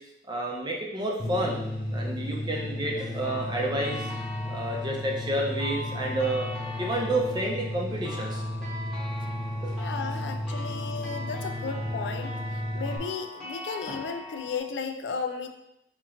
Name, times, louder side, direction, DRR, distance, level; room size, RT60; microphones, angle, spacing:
voice 1, 0.3-1.6 1.9-4.1 4.5-6.5 6.8-8.4 9.6-9.7 13.9-14.0, right 1 dB, 25° right, -1 dB, 0.6 m, -30 dB
sound 1, 1.2-13.0, left 1 dB, 25° left, 0.5 m, -34 dB
sound 2, 3.2-14.6, left 1 dB, ahead, 1.1 m, -41 dB
voice 2, 9.8-15.5, left 5 dB, 85° left, 7 dB, 0.4 m, -34 dB
4.4 x 2.9 x 2.5 m, 0.81 s
head